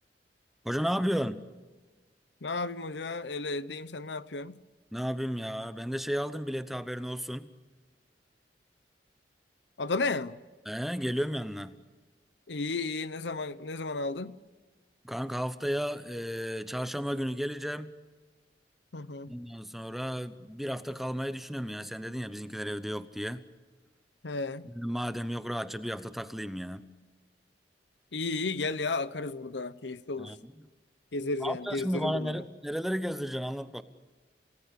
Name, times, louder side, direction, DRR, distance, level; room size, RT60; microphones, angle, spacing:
voice 1, 0.6-1.4 4.9-7.5 10.7-11.8 15.0-17.9 19.3-23.4 24.7-26.9 30.2-30.4 31.4-33.8, equal, ahead, 0.9 m, -33 dB
voice 2, 2.4-4.6 9.8-10.4 12.5-14.4 18.9-19.3 24.2-24.7 28.1-30.4 31.1-32.4, left 3 dB, 75° left, 0.9 m, -33 dB
29.0 x 18.5 x 8.5 m
head